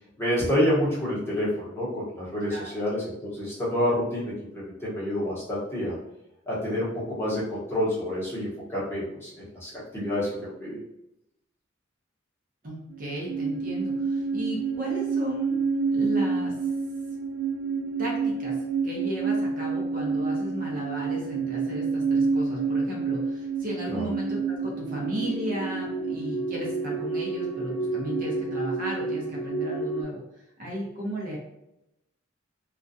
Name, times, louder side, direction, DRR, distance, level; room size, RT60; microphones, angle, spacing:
voice 1, 0.2-6.0 6.5-10.8 23.9-24.1, equal, 10° left, -9 dB, 0.9 m, -28 dB
voice 2, 12.6-15.6 15.9-16.5 18.0-18.5 18.8-30.2 30.6-31.4, equal, 45° right, -3 dB, 0.6 m, -35 dB
sound 1, 12.9-30.0, right 4 dB, 85° right, 0.7 m, -29 dB
2.4 x 2.2 x 2.6 m, 0.85 s
head